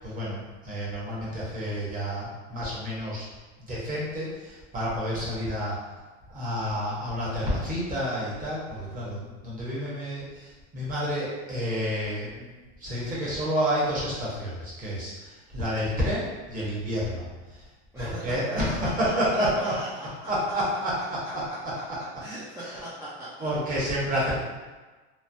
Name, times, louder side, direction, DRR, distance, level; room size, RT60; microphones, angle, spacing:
voice 1, 0.0-3.3 3.6-5.8 6.3-12.5 12.8-17.6 18.0-19.7 20.3-21.7 22.6-22.8 23.4-24.4, equal, 25° right, -6 dB, 1.1 m, -29 dB
voice 2, 19.0-19.9 22.2-23.5 24.1-24.4, right 1 dB, 10° right, -11 dB, 0.6 m, -39 dB
3.1 x 2.1 x 2.6 m, 1.3 s
supercardioid pair, 125°, 34 cm